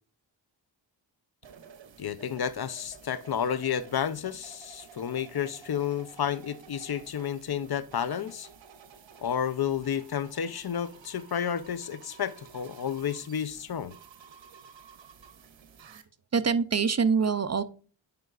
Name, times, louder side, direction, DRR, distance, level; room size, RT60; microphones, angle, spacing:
sound 1, 1.4-16.0, right 6 dB, 70° right, 0.9 m, -52 dB
voice 1, 2.0-8.5 9.2-13.9, left 8 dB, 55° left, 0.6 m, -31 dB
voice 2, 16.3-17.6, right 5 dB, 35° right, 0.5 m, -24 dB
9.4 x 5.0 x 2.4 m
cardioid pair, 60°, 46 cm